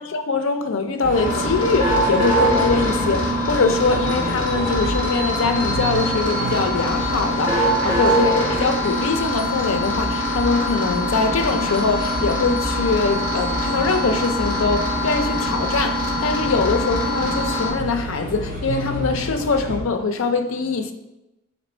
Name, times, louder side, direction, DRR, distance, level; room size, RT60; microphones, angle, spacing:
voice 1, 0.0-20.9, left 4 dB, 70° left, 0.4 m, -23 dB
sound 1, 1.0-19.8, equal, 40° right, 0.7 m, -30 dB
sound 2, 1.1-17.7, equal, 20° right, 1.6 m, -23 dB
4.2 x 3.0 x 4.2 m
head